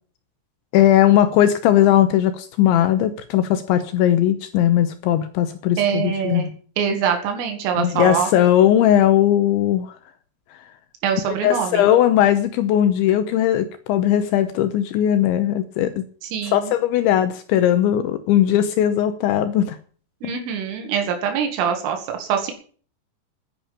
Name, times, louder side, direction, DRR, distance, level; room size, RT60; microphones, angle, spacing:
voice 1, 0.7-6.5 7.8-9.9 11.3-16.0 16.5-19.8, left 11 dB, 80° left, 11 dB, 3.1 m, -18 dB
voice 2, 5.8-6.5 6.8-8.3 11.0-11.9 16.2-16.7 20.2-22.5, right 7 dB, 85° right, 4 dB, 4.8 m, -24 dB
10.5 x 10.5 x 8.6 m, 0.43 s
omnidirectional pair, 5.7 m